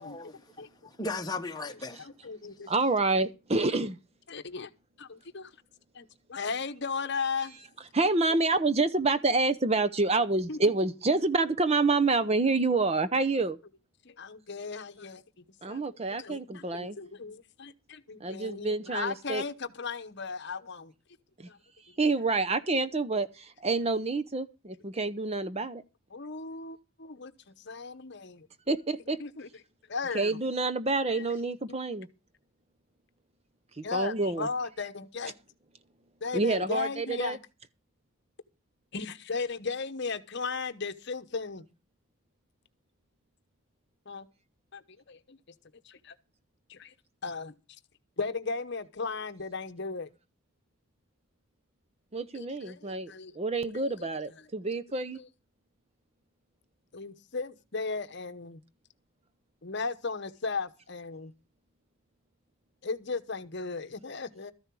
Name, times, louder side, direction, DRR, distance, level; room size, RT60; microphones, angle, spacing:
voice 1, 0.0-2.0, left 2 dB, 20° left, 1.3 m, -37 dB
voice 2, 2.0-2.7 4.3-4.7 5.0-5.5 5.9-7.6 10.5-10.6 14.0-15.8 16.2-20.9 21.5-21.6 26.1-28.5 29.2-29.5 29.9-30.4 30.9-31.2 33.8-35.3 36.2-37.4 38.9-41.6 44.1-44.3 44.7-44.8 45.1-45.4 45.8-46.1 46.7-46.9 47.2-47.5 48.2-50.1 52.3-53.3 53.7-54.1 55.1-55.3 56.9-58.6 59.6-61.3 62.8-64.5, left 4 dB, 50° left, 1.0 m, -36 dB
voice 3, 2.7-4.0 7.9-13.6 15.6-17.0 18.2-19.4 21.4-21.5 22.0-25.8 28.7-29.2 30.1-32.1 33.8-34.5 36.3-37.4 52.1-55.2, right 3 dB, 30° right, 0.7 m, -28 dB
13.5 x 10.5 x 4.6 m
head